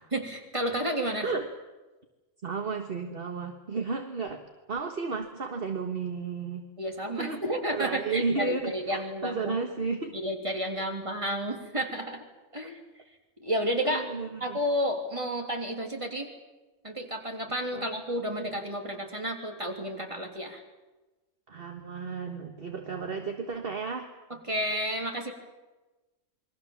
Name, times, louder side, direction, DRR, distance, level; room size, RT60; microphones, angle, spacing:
voice 1, 0.1-1.3 6.8-9.6 10.1-12.2 12.5-12.8 13.4-14.0 14.4-16.3 16.8-20.6 24.5-25.3, equal, 25° right, 2 dB, 3.5 m, -31 dB
voice 2, 2.4-4.4 4.7-6.7 7.2-7.4 7.7-10.1 10.8-10.9 13.8-14.6 17.7-17.9 21.5-24.1, right 4 dB, 50° right, 5 dB, 1.7 m, -33 dB
28.5 x 22.5 x 7.3 m, 1.1 s
omnidirectional pair, 1.3 m